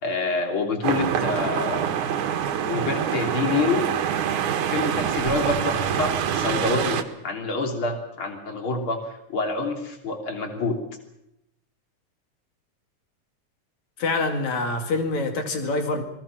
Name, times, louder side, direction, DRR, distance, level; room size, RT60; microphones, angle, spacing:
voice 1, 0.0-1.9 2.7-3.9 4.7-10.8, left 3 dB, 40° left, 3 dB, 3.8 m, -27 dB
sound 1, 0.8-7.0, right 9 dB, 75° right, 2.7 m, -25 dB
voice 2, 14.0-16.0, left 3 dB, 65° left, 5 dB, 3.6 m, -25 dB
27.5 x 19.5 x 6.1 m, 0.80 s
omnidirectional pair, 3.5 m